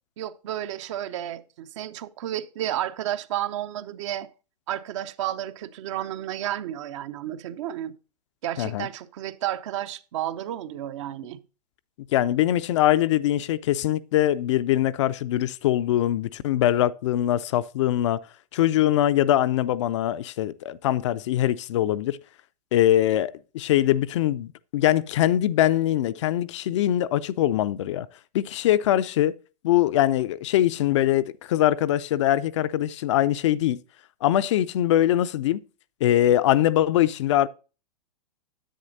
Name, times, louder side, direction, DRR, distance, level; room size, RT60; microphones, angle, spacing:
voice 1, 0.2-4.3 4.7-8.0 8.4-11.4, right 12 dB, 45° right, 0.5 m, -32 dB
voice 2, 12.1-18.2 18.5-22.2 22.7-28.1 28.3-29.3 29.6-33.8 34.2-35.6 36.0-37.5, left 13 dB, 45° left, 0.4 m, -22 dB
10.0 x 7.9 x 2.6 m
figure-of-eight pair, 110°, 21 cm